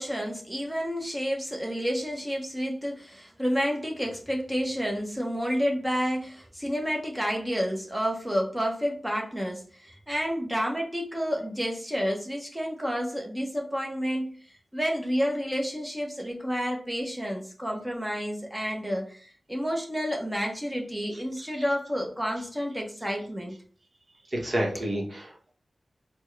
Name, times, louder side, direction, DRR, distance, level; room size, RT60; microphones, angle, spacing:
voice 1, 0.0-14.4 14.7-23.5, equal, 10° right, 0 dB, 0.9 m, -30 dB
voice 2, 21.4-21.7 24.3-25.5, right 1 dB, 40° right, -1 dB, 1.0 m, -30 dB
4.3 x 2.1 x 3.2 m, 0.44 s
wide cardioid pair, 95°, 0 cm